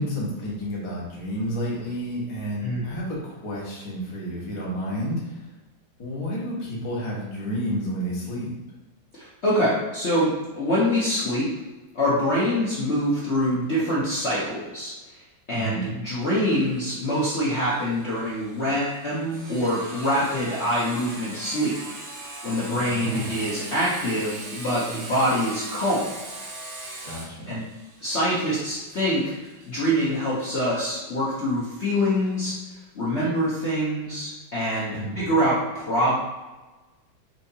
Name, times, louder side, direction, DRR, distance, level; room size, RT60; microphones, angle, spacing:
voice 1, 0.0-5.4 6.0-8.5 15.5-15.9 22.7-23.3 27.0-27.6 34.9-35.2, equal, 30° left, -5 dB, 0.6 m, -30 dB
voice 2, 9.1-11.5 11.9-14.9 15.5-21.8 22.4-26.1 27.5-27.6 28.0-32.6 32.9-36.2, equal, 55° left, -8 dB, 0.8 m, -25 dB
Sawing, 16.2-31.6, right 2 dB, 60° right, 1.3 m, -40 dB
4.5 x 2.8 x 2.7 m, 1.2 s
omnidirectional pair, 2.1 m